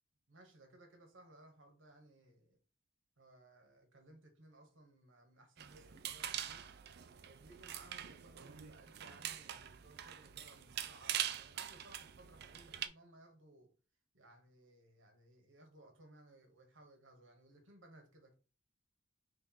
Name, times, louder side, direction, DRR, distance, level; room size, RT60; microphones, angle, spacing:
voice 1, 0.3-2.6 3.2-6.7 7.2-13.7 14.1-18.3, right 1 dB, 80° right, 1.1 m, -61 dB
sound 1, 5.6-12.9, right 10 dB, 55° right, 0.4 m, -44 dB
3.2 x 3.0 x 3.8 m
head